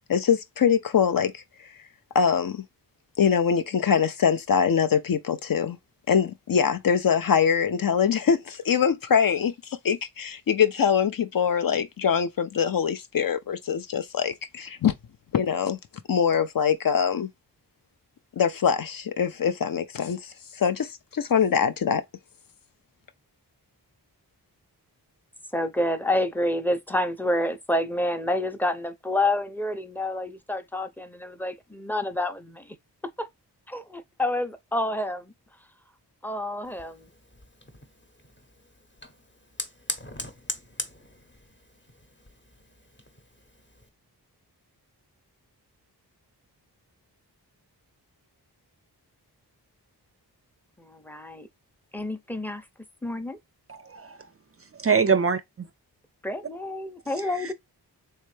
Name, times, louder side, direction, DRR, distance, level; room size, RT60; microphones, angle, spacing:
voice 1, 0.1-1.4 2.1-2.6 3.2-5.8 6.1-14.9 15.3-15.8 16.1-17.3 18.4-22.0, left 7 dB, 55° left, 0.6 m, -23 dB
voice 2, 25.5-32.8 33.2-33.3 33.7-35.3 36.2-37.1 50.8-51.5 51.9-52.7 53.0-53.4 56.2-57.5, left 1 dB, 5° left, 0.6 m, -28 dB
Fire, 36.6-43.9, left 1 dB, 30° left, 0.9 m, -41 dB
voice 3, 53.7-54.2 54.7-55.7 57.4-57.5, right 6 dB, 35° right, 0.4 m, -24 dB
3.3 x 3.2 x 3.2 m
cardioid pair, 55°, 41 cm